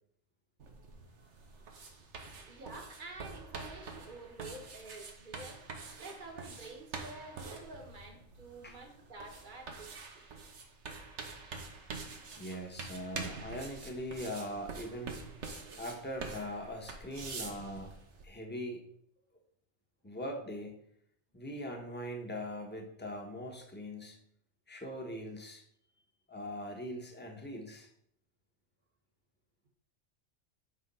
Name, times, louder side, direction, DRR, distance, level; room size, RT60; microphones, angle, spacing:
sound 1, 0.6-18.2, right 4 dB, 80° right, 1.3 m, -46 dB
voice 1, 2.2-10.3, right 2 dB, 45° right, 3 dB, 1.4 m, -49 dB
voice 2, 12.4-15.3 15.8-17.9 18.2-18.8 20.0-20.9 21.3-24.2 24.7-25.6 26.3-27.9, equal, 10° left, 2 dB, 1.2 m, -41 dB
8.6 x 3.6 x 5.5 m, 0.69 s
omnidirectional pair, 1.2 m